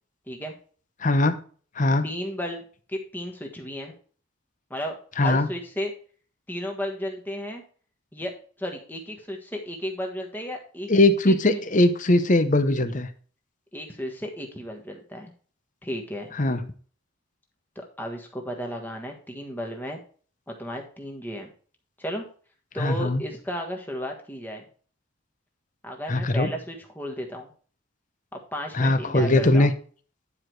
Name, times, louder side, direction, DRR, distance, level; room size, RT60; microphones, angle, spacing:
voice 1, 1.0-1.3 1.8-2.1 5.2-5.5 10.9-13.1 16.4-16.6 22.8-23.2 26.1-26.5 28.8-29.7, left 2 dB, 35° left, 11 dB, 0.8 m, -20 dB
voice 2, 2.0-2.6 2.9-3.9 4.7-5.9 6.5-7.6 8.1-8.3 8.6-10.9 11.3-11.6 13.7-15.3 15.8-16.3 17.7-20.0 20.5-21.5 22.0-22.3 22.7-24.6 25.8-27.5 28.3-29.7, equal, 10° left, 2 dB, 1.4 m, -34 dB
10.0 x 4.9 x 4.6 m, 0.42 s
head